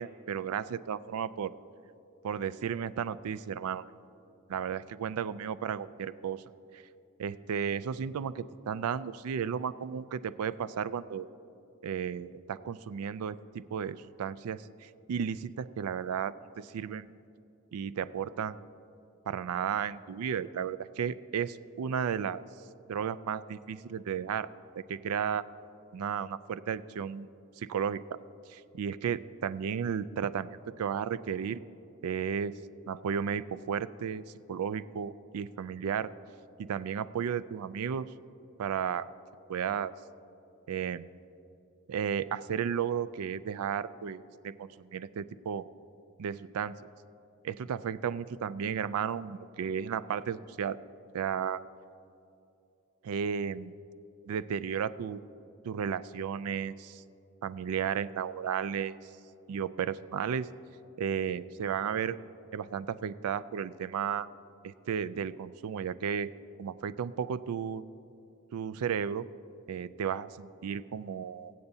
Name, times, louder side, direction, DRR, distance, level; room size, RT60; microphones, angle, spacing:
voice 1, 0.0-1.5 2.2-3.9 4.5-6.4 6.7-6.8 7.2-11.3 11.8-17.1 17.7-18.6 19.3-22.4 22.9-24.5 24.7-25.5 25.9-27.3 27.6-28.0 28.5-31.6 32.0-32.6 32.9-36.1 36.6-38.1 38.6-39.1 39.5-39.9 40.7-41.1 41.9-45.6 46.2-46.8 47.4-50.8 51.1-51.6 53.0-53.7 54.3-55.2 55.6-57.0 57.4-59.1 59.5-60.5 61.0-62.2 62.5-64.3 64.6-66.3 66.6-67.8 68.5-69.3 69.7-71.5, right 7 dB, 85° right, 16 dB, 0.3 m, -34 dB
23.0 x 7.8 x 2.7 m, 2.7 s
head